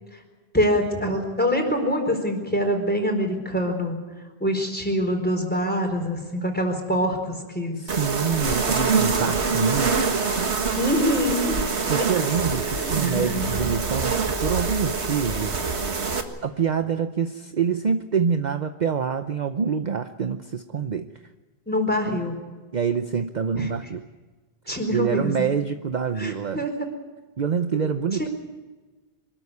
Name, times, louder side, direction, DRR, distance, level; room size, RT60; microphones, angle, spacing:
voice 1, 0.5-4.0 4.4-7.8 10.7-11.6 12.0-12.3 12.7-13.5 21.7-22.4 23.6-23.7 24.7-25.5 26.2-26.9 28.2-28.3, equal, 10° left, 3 dB, 4.3 m, -25 dB
voice 2, 7.8-10.1 11.9-15.5 16.4-21.1 22.7-24.0 24.9-26.7 27.4-28.3, right 6 dB, 45° right, 8 dB, 0.9 m, -26 dB
sound 1, 7.9-16.2, right 4 dB, 80° right, 2.0 m, -25 dB
24.5 x 13.5 x 9.7 m, 1.3 s
omnidirectional pair, 1.1 m